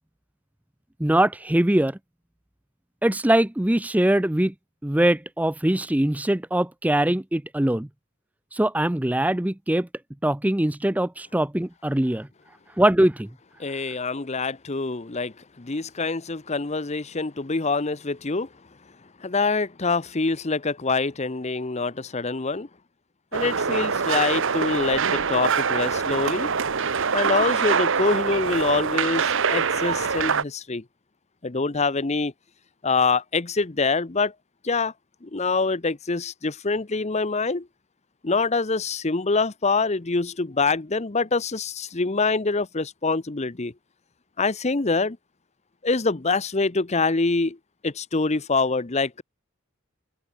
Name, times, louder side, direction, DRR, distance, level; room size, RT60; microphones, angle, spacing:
voice 1, 1.0-2.0 3.0-4.5 4.8-7.9 8.5-9.9 10.2-12.3 12.8-13.3, right 1 dB, 5° right, 0.5 m, -22 dB
voice 2, 13.6-18.5 19.2-22.7 23.3-26.5 27.1-30.8 31.4-32.3 32.8-34.3 34.6-34.9 35.2-37.7 38.2-43.7 44.4-45.2 45.8-47.6 47.8-49.2, left 3 dB, 30° left, 0.8 m, -25 dB
sound 1, 23.3-30.4, right 6 dB, 55° right, 1.0 m, -24 dB
head